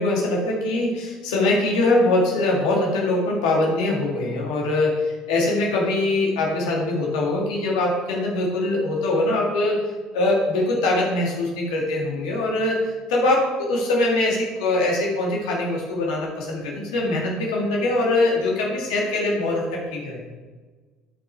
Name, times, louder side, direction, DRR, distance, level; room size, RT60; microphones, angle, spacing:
voice 1, 0.0-9.8 10.1-20.2, left 2 dB, 90° left, -1 dB, 2.3 m, -22 dB
11.0 x 5.5 x 4.7 m, 1.3 s
supercardioid pair, 75°, 3 cm